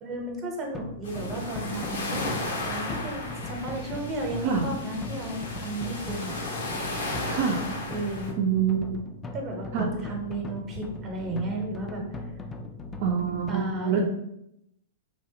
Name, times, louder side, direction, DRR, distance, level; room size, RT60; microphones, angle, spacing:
voice 1, 0.0-6.4 7.9-8.4 9.3-12.2 13.5-14.1, right 1 dB, 30° right, 1 dB, 0.7 m, -34 dB
sound 1, 0.7-13.5, left 3 dB, 20° left, 0.3 m, -39 dB
sound 2, 1.0-8.3, left 2 dB, 90° left, 0.8 m, -34 dB
voice 2, 7.3-7.6 8.4-9.0 9.7-9.9 13.0-14.1, right 7 dB, 55° right, 0 dB, 0.4 m, -25 dB
3.2 x 2.0 x 2.7 m, 0.79 s
hypercardioid pair, 120°, 0 cm